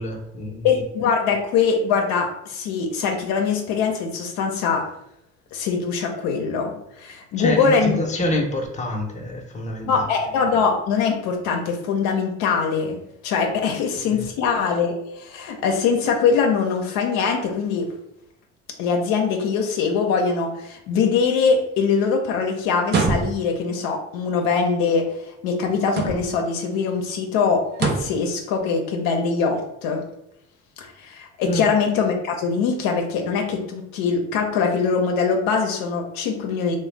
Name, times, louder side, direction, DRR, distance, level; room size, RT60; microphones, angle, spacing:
voice 1, 0.0-0.9 7.4-10.3 13.9-14.3 31.4-31.6, equal, 20° left, 1 dB, 0.7 m, -27 dB
voice 2, 0.6-4.8 5.5-7.9 9.9-13.0 13.2-17.9 18.8-30.0 30.8-36.8, left 5 dB, 75° left, 3 dB, 0.6 m, -22 dB
sound 1, 22.8-23.7 25.8-26.5 27.7-28.3, right 4 dB, 30° right, 0.4 m, -24 dB
2.3 x 2.2 x 3.2 m, 0.77 s
supercardioid pair, 70°, 35 cm